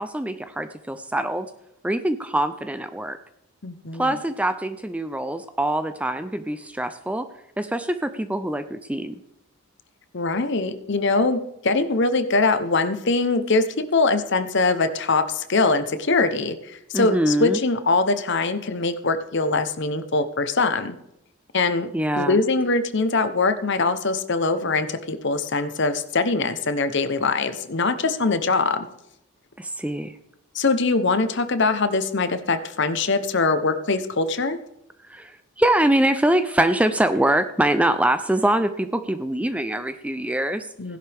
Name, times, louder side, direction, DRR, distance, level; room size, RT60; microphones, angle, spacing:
voice 1, 0.0-1.5 1.8-3.2 4.0-7.3 7.6-9.1 16.9-17.6 21.9-22.4 29.6-30.1 35.1-40.7, right 1 dB, 5° right, 10 dB, 0.4 m, -23 dB
voice 2, 3.6-4.2 10.1-13.6 13.9-21.0 21.5-28.9 30.5-34.6 40.8-41.0, left 3 dB, 55° left, 10 dB, 0.9 m, -22 dB
16.5 x 11.0 x 3.5 m, 0.82 s
head